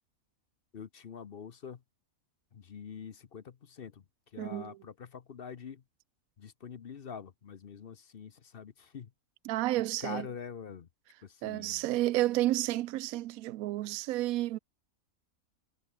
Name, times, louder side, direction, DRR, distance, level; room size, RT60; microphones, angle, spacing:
voice 1, 0.7-1.8 2.5-4.0 4.3-5.8 6.4-9.1 10.0-10.9 11.2-11.8, left 7 dB, 50° left, 0.9 m, -45 dB
voice 2, 4.4-4.8 9.5-10.3 11.4-14.6, right 16 dB, 80° right, 1.0 m, -31 dB
omnidirectional pair, 1.5 m